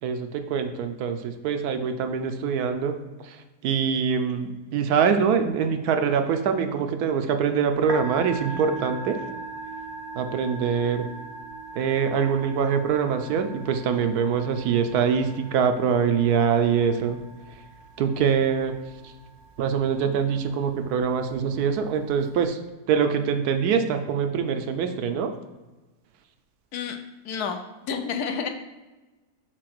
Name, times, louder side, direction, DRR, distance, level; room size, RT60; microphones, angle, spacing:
voice 1, 0.0-9.3 10.1-11.1 11.7-17.2 17.5-17.6 18.0-19.1 19.6-22.6 22.9-25.3, right 6 dB, 75° right, 7 dB, 1.1 m, -24 dB
Musical instrument, 7.7-22.5, right 3 dB, 50° right, 0.9 m, -41 dB
voice 2, 27.2-28.5, left 6 dB, 75° left, 6 dB, 1.1 m, -30 dB
4.7 x 4.2 x 5.9 m, 1.2 s
omnidirectional pair, 1.8 m